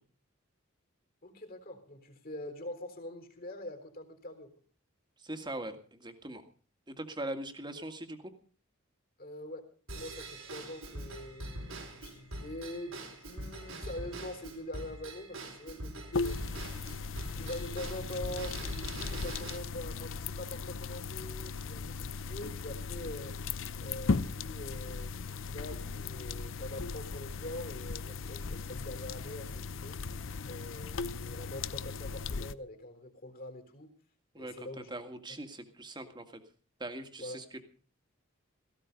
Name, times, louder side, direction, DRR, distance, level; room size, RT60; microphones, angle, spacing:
voice 1, 1.2-4.5 9.2-16.6 17.3-23.4 23.8-33.9 34.4-34.9 37.2-37.4, left 1 dB, 45° left, 6 dB, 3.8 m, -44 dB
voice 2, 5.2-6.4 6.9-8.3 34.3-36.4 36.8-37.6, right 1 dB, 20° right, 7 dB, 2.0 m, -41 dB
Drum kit / Drum / Bell, 9.9-19.6, right 1 dB, 85° right, 4.4 m, -43 dB
sound 1, 16.1-32.6, left 4 dB, 70° left, 0.7 m, -37 dB
17.5 x 15.5 x 5.3 m, 0.41 s
head